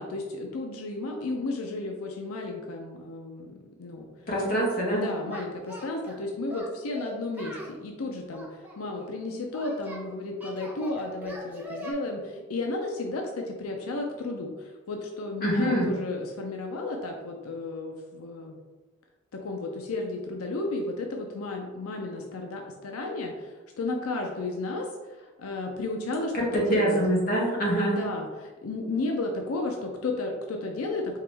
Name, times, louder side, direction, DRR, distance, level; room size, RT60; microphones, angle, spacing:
voice 1, 0.0-3.5 3.8-4.1 4.9-18.6 19.3-27.0 27.9-31.2, left 2 dB, 90° left, 2 dB, 0.5 m, -33 dB
voice 2, 4.3-5.0 15.4-15.9 26.3-28.0, right 1 dB, 45° left, -4 dB, 1.3 m, -25 dB
Singing, 5.3-6.2 6.5-7.8 8.3-10.0 10.4-11.9, equal, 10° right, 0.7 m, -42 dB
4.7 x 2.9 x 3.4 m, 1.2 s
head